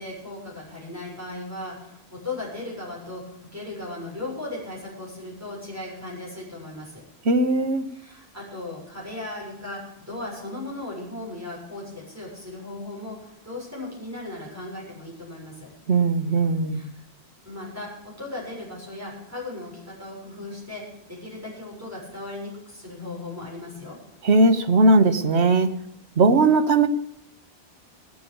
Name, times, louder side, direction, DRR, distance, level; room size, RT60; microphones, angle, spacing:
voice 1, 0.0-7.0 7.9-15.7 16.7-17.0 17.4-24.0, left 2 dB, 15° right, -4 dB, 6.9 m, -37 dB
voice 2, 7.2-7.9 15.9-16.9 24.2-25.8 26.2-26.9, right 2 dB, 85° right, 9 dB, 1.4 m, -19 dB
19.0 x 7.9 x 7.1 m, 0.79 s
omnidirectional pair, 1.1 m